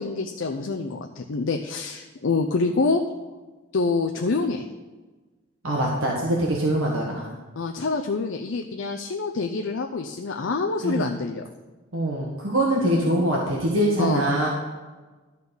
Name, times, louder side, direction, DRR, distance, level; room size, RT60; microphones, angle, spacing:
voice 1, 0.0-3.0 3.7-4.7 7.6-11.4 12.8-13.1 14.0-14.3, left 3 dB, 75° left, 3 dB, 0.6 m, -26 dB
voice 2, 5.6-7.3 10.8-11.1 11.9-14.5, right 1 dB, 85° right, -3 dB, 1.5 m, -23 dB
12.5 x 4.2 x 6.9 m, 1.3 s
head